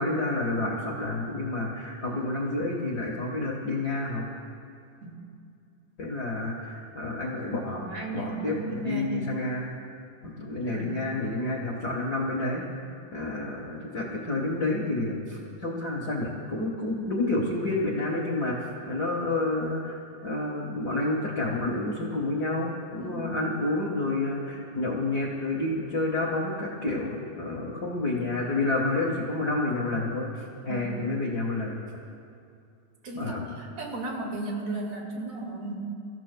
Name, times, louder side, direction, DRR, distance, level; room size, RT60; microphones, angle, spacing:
voice 1, 0.0-4.2 6.0-9.7 10.2-12.6 13.1-18.6 18.9-20.0 20.2-31.8 33.1-33.5, left 2 dB, 60° left, -2 dB, 1.0 m, -29 dB
voice 2, 7.6-9.4 10.7-11.2 23.0-23.3 30.6-30.9 33.0-35.7, right 2 dB, 55° right, -1 dB, 3.1 m, -35 dB
29.0 x 15.0 x 2.2 m, 2.5 s
omnidirectional pair, 4.0 m